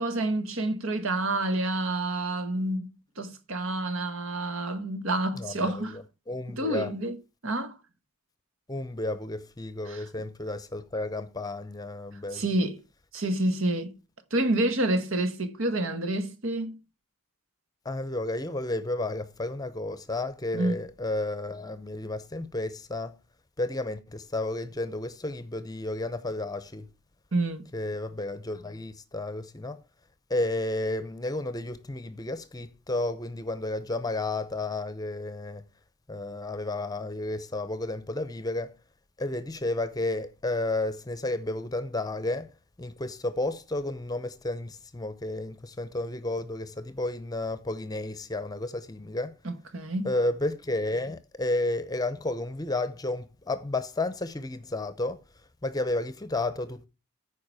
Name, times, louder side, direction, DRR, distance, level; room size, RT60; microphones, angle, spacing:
voice 1, 0.0-2.9 3.2-6.0 6.5-7.2 7.4-7.7 9.9-10.0 12.3-12.8 13.1-14.0 14.3-16.8 20.5-20.8 27.3-27.7 49.4-50.1, right 1 dB, 70° right, 1.5 m, -28 dB
voice 2, 5.3-6.9 8.7-12.5 17.8-23.2 23.6-26.9 27.7-29.8 30.3-35.6 36.1-38.8 39.2-42.5 42.8-49.3 50.0-55.2 55.6-56.9, left 2 dB, 20° left, 0.7 m, -32 dB
14.0 x 5.0 x 4.8 m
head